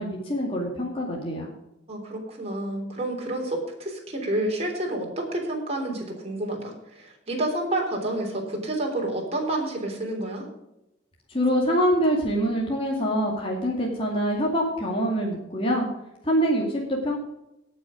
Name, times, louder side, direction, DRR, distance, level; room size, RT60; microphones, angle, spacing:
voice 1, 0.0-1.5 11.3-15.9 16.2-17.2, equal, 30° left, -2 dB, 2.3 m, -25 dB
voice 2, 1.9-10.5, right 1 dB, 35° right, 0 dB, 3.5 m, -29 dB
17.5 x 6.4 x 5.1 m, 0.89 s
head